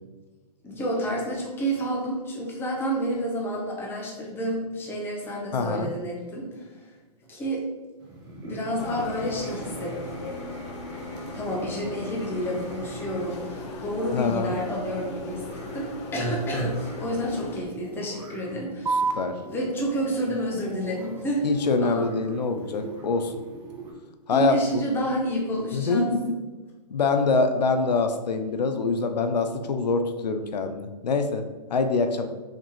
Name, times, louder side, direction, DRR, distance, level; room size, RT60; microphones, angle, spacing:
voice 1, 0.6-6.7 7.3-7.6 8.4-10.2 11.3-19.1 19.5-21.4 21.8-22.1 24.3-26.1, equal, 10° left, -1 dB, 0.8 m, -29 dB
voice 2, 5.5-5.9 14.1-14.5 19.1-19.4 21.4-23.3 24.3-24.8 25.7-26.4 26.9-32.3, left 4 dB, 80° left, 7 dB, 0.5 m, -25 dB
sound 1, 8.0-23.9, right 1 dB, 20° right, 1.0 m, -41 dB
sound 2, 8.8-17.6, left 2 dB, 40° left, 0.7 m, -39 dB
sound 3, 18.9-25.9, right 4 dB, 80° right, 0.8 m, -36 dB
4.6 x 3.5 x 3.0 m, 1.3 s
hypercardioid pair, 130°, 21 cm